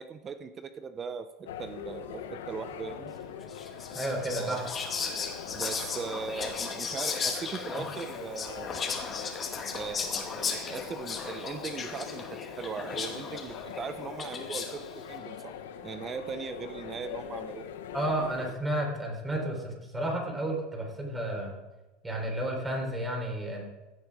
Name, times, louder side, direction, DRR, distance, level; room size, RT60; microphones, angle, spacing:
voice 1, 0.0-3.1 4.4-4.6 5.5-8.8 9.7-15.5 15.8-17.7, right 6 dB, 30° right, 10 dB, 0.7 m, -39 dB
sound 1, 1.5-18.5, left 8 dB, 90° left, 1.1 m, -43 dB
Whispering, 3.5-14.9, left 5 dB, 30° left, 2.1 m, -36 dB
voice 2, 3.9-4.6 17.9-21.5 22.0-23.6, right 1 dB, 15° right, 0 dB, 4.1 m, -32 dB
16.0 x 7.9 x 4.9 m, 1.1 s
supercardioid pair, 110°, 0 cm